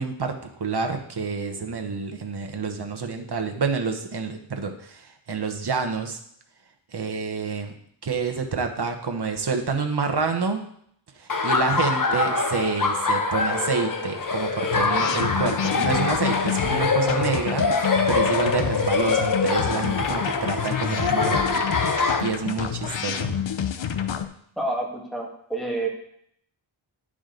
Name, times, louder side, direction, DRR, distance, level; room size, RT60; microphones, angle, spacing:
voice 1, 0.0-6.2 6.9-7.7 8.0-10.6 11.2-21.6 22.2-23.3, right 4 dB, 55° right, 5 dB, 1.1 m, -28 dB
Laughter, 11.3-22.2, left 4 dB, 45° left, 0.8 m, -24 dB
sound 1, 14.7-24.3, left 8 dB, 70° left, 0.7 m, -29 dB
voice 2, 24.6-25.9, right 2 dB, ahead, -1 dB, 1.8 m, -28 dB
10.5 x 5.0 x 3.9 m, 0.68 s
wide cardioid pair, 85°, 48 cm